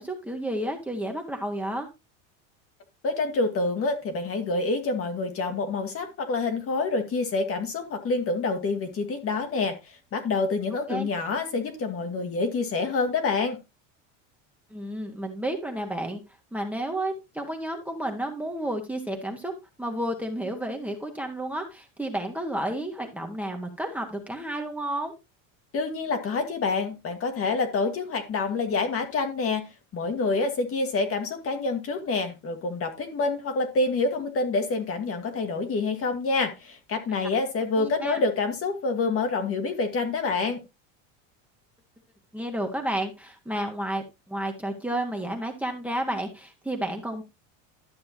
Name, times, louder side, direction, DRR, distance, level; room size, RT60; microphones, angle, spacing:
voice 1, 0.0-1.9 10.9-11.1 14.7-16.2 16.5-19.5 19.8-25.1 37.8-38.2 42.3-47.2, right 1 dB, 5° right, 1.5 m, -31 dB
voice 2, 3.0-13.6 25.7-40.6, left 3 dB, 35° left, 1.8 m, -27 dB
12.0 x 6.7 x 2.8 m
supercardioid pair, 125°, 38 cm